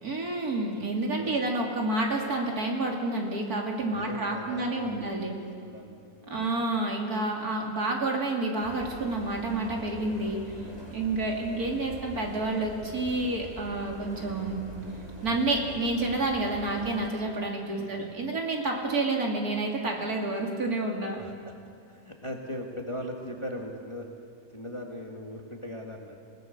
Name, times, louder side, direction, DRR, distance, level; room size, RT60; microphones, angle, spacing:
voice 1, 0.0-5.4 6.3-10.4 10.9-14.7 15.2-21.2, right 2 dB, 55° right, 0 dB, 3.2 m, -29 dB
voice 2, 3.9-6.4 11.1-11.3 17.7-18.3 21.1-21.3 21.9-24.1 24.5-26.3, left 1 dB, 15° left, 1 dB, 1.8 m, -40 dB
sound 1, 8.6-17.1, right 1 dB, 15° right, 3.1 m, -44 dB
29.0 x 18.0 x 6.7 m, 2.3 s
omnidirectional pair, 1.9 m